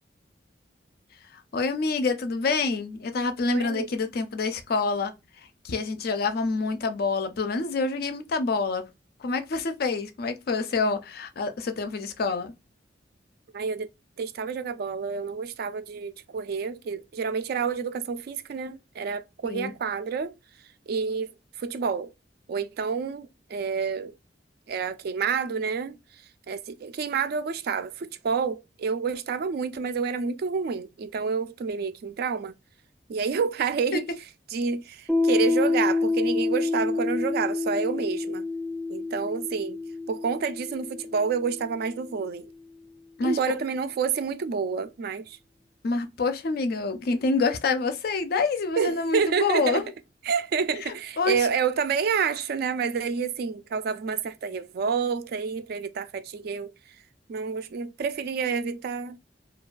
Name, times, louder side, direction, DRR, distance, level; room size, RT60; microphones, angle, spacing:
voice 1, 1.5-5.1 5.6-8.8 9.2-12.5 19.4-19.7 33.9-34.0 43.2-43.4 45.8-49.8 50.9-51.4, left 4 dB, 55° left, 0.4 m, -27 dB
voice 2, 3.5-4.0 13.5-13.9 14.2-20.3 20.9-22.1 22.5-24.1 24.7-32.5 33.1-34.1 34.5-38.4 38.9-39.8 40.1-42.5 43.2-45.4 48.8-49.9 50.2-57.0 57.3-59.2, right 5 dB, 60° right, 0.3 m, -29 dB
Piano, 35.1-42.3, left 3 dB, 5° left, 0.5 m, -28 dB
2.3 x 2.2 x 2.4 m
head